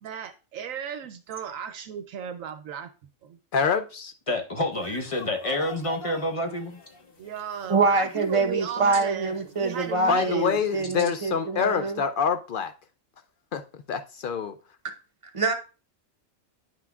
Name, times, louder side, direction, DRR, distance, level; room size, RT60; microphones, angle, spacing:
voice 1, 0.0-2.9 3.2-3.4 7.2-10.7, right 8 dB, 75° right, 1.0 m, -36 dB
voice 2, 3.5-4.1 10.1-12.7 13.5-13.6 13.9-14.5, left 6 dB, 70° left, 0.4 m, -26 dB
voice 3, 4.3-6.8, left 1 dB, 30° left, 0.8 m, -28 dB
sound 1, 4.7-10.7, left 2 dB, 50° left, 1.1 m, -46 dB
voice 4, 7.7-12.0 15.3-15.5, right 3 dB, 30° right, 0.8 m, -25 dB
9.5 x 5.8 x 2.3 m
omnidirectional pair, 1.4 m